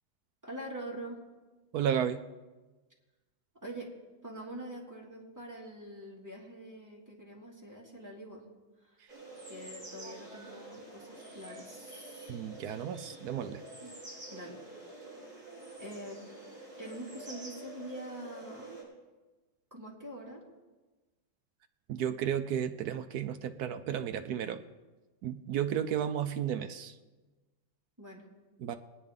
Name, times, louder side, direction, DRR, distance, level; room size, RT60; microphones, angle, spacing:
voice 1, 0.4-1.2 3.6-3.9 4.2-8.4 8.8-9.0 9.5-12.3 13.8-13.9 14.3-14.6 15.8-16.2 16.8-18.7 19.7-20.5 28.0-28.2, right 1 dB, 10° right, -4 dB, 2.3 m, -44 dB
voice 2, 1.7-2.2 9.0-9.1 12.3-13.6 21.9-24.6 25.2-27.0 28.6-28.7, right 9 dB, 70° right, 8 dB, 0.9 m, -33 dB
sound 1, 9.1-18.8, right 2 dB, 30° right, 4.5 m, -48 dB
20.0 x 9.9 x 3.7 m, 1.2 s
omnidirectional pair, 2.1 m